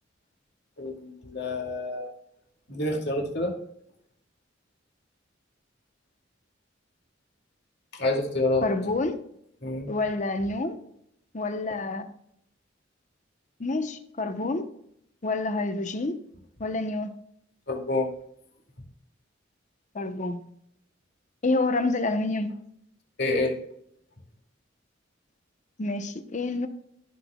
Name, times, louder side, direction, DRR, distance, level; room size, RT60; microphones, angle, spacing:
voice 1, 0.8-2.1 2.7-3.5 7.9-8.7 9.6-9.9 17.7-18.1 23.2-23.6, left 2 dB, 60° left, 2.2 m, -28 dB
voice 2, 8.6-9.2 9.9-10.8 11.3-12.1 13.6-14.7 15.2-16.2 16.6-17.1 19.9-20.5 21.4-22.5 25.8-26.7, left 2 dB, 40° left, 0.8 m, -28 dB
14.5 x 6.2 x 2.3 m
head